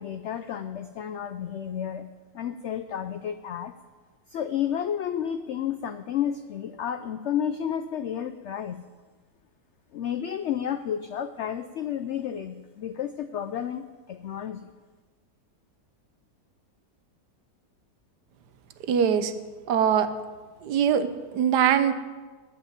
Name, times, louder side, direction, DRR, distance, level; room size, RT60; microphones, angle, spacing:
voice 1, 0.0-2.1 2.3-3.7 4.3-8.8 9.9-14.7, left 9 dB, 90° left, 11 dB, 0.6 m, -31 dB
voice 2, 18.9-19.3 19.7-20.1 20.6-21.9, right 8 dB, 80° right, 11 dB, 1.4 m, -22 dB
14.0 x 5.6 x 9.6 m, 1.4 s
omnidirectional pair, 1.8 m